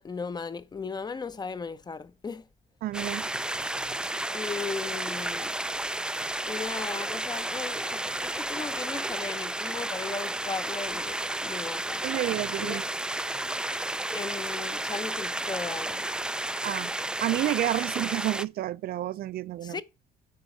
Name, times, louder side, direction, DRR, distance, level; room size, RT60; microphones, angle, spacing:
voice 1, 0.0-2.5 4.3-5.5 6.5-12.0 12.6-12.8 14.1-16.1 19.6-19.8, left 5 dB, 25° left, 0.8 m, -36 dB
voice 2, 2.8-3.4 3.8-3.9 12.0-12.9 13.3-13.4 16.6-16.9 17.2-19.8, right 14 dB, 65° right, 0.5 m, -30 dB
sound 1, 2.9-18.4, right 1 dB, 5° right, 0.4 m, -32 dB
9.1 x 4.8 x 6.1 m
cardioid pair, 110°, 17 cm